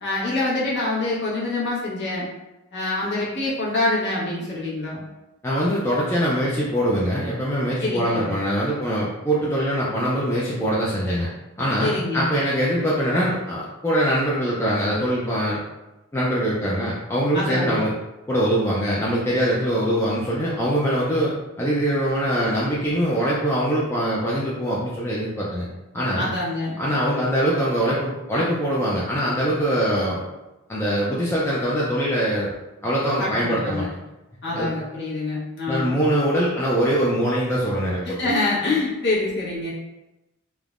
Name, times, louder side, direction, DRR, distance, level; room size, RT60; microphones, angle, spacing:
voice 1, 0.0-2.3 2.7-5.0 7.8-8.3 11.8-12.3 17.3-17.8 26.1-26.8 33.2-33.9 34.4-35.9 38.0-39.7, left 2 dB, 55° left, -7 dB, 0.9 m, -25 dB
voice 2, 5.4-11.3 11.6-15.6 16.1-17.9 18.3-25.7 25.9-26.3 26.8-30.2 30.7-32.5 32.8-33.9 34.5-34.7 35.7-38.3, equal, 10° left, -7 dB, 0.3 m, -23 dB
3.3 x 2.1 x 2.4 m, 0.99 s
head